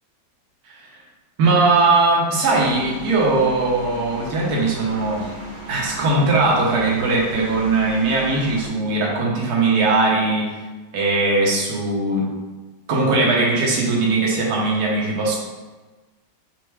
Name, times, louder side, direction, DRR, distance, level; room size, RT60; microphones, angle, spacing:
voice 1, 1.4-5.3 5.7-10.5 10.9-12.3 12.9-15.4, right 3 dB, 65° right, -3 dB, 1.3 m, -19 dB
sound 1, 2.5-8.7, right 2 dB, 20° left, 0.6 m, -37 dB
4.6 x 2.1 x 4.5 m, 1.2 s
omnidirectional pair, 2.0 m